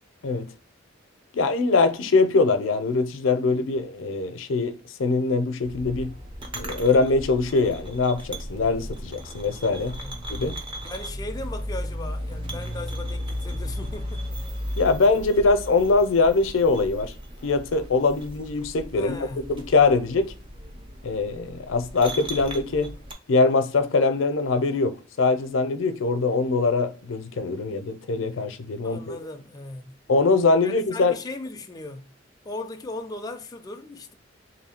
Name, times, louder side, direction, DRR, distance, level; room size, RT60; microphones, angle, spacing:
voice 1, 1.3-6.1 6.5-10.0 10.3-10.6 14.8-17.1 17.4-20.3 21.0-22.9 23.3-29.2 30.1-31.2, left 3 dB, 90° left, 0.5 m, -22 dB
sound 1, 5.6-23.1, equal, 25° right, 0.6 m, -36 dB
voice 2, 10.8-14.2 19.0-19.5 28.8-30.0 30.6-32.0 32.4-34.1, left 2 dB, 20° left, 0.4 m, -37 dB
3.1 x 2.7 x 4.2 m
head